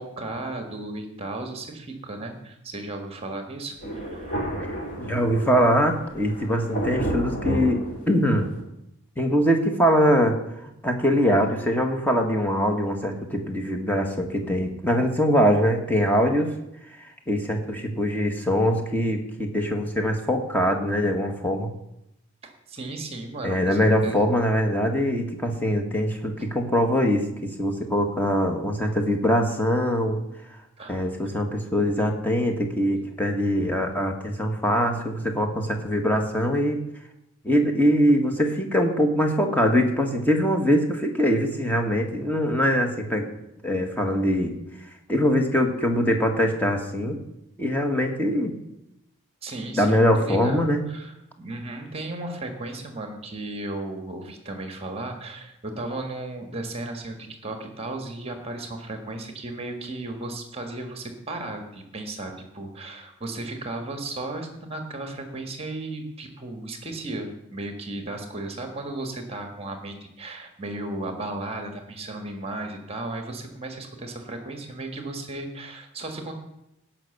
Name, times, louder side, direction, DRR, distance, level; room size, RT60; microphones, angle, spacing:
voice 1, 0.0-4.4 22.4-24.2 30.8-31.0 49.4-76.3, right 2 dB, 25° right, 5 dB, 1.5 m, -35 dB
Thunder, 3.8-8.6, right 1 dB, 40° left, 3.1 m, -31 dB
voice 2, 5.0-8.5 9.2-10.3 10.6-16.5 17.3-21.7 23.4-30.2 30.9-36.8 37.4-43.3 43.6-44.5 45.1-47.2 47.6-48.5 49.7-50.8, equal, 10° left, 3 dB, 1.5 m, -23 dB
17.0 x 5.9 x 6.6 m, 0.86 s
head